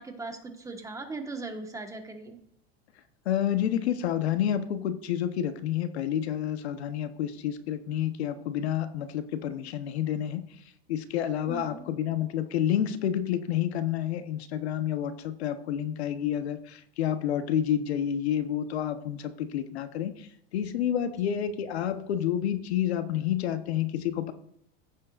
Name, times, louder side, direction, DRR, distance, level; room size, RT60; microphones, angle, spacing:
voice 1, 0.0-2.4 11.5-11.9, right 3 dB, 10° right, 4 dB, 1.3 m, -39 dB
voice 2, 3.2-10.4 10.9-20.3 20.5-24.3, left 10 dB, 90° left, 10 dB, 1.0 m, -29 dB
15.0 x 7.6 x 2.4 m, 0.71 s
supercardioid pair, 125°, 31 cm